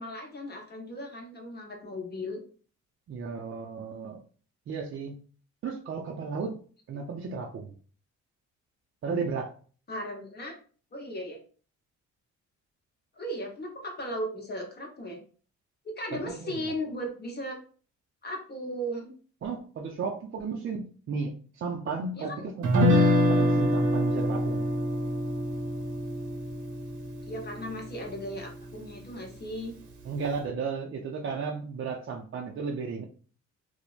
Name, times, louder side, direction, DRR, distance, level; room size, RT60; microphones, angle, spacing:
voice 1, 0.0-2.4 9.9-10.6 10.9-11.4 13.2-15.2 16.0-17.6 18.2-19.1 22.1-22.5 27.3-29.7, equal, 35° left, 1 dB, 0.8 m, -36 dB
voice 2, 3.1-4.2 4.7-5.2 5.6-6.6 6.9-7.7 9.0-9.5 16.1-16.7 19.4-24.6 30.0-33.0, right 5 dB, 45° right, 0 dB, 0.4 m, -34 dB
Guitar, 22.6-28.8, left 1 dB, 75° right, 0.7 m, -26 dB
3.0 x 2.0 x 2.3 m, 0.41 s
cardioid pair, 75°, 31 cm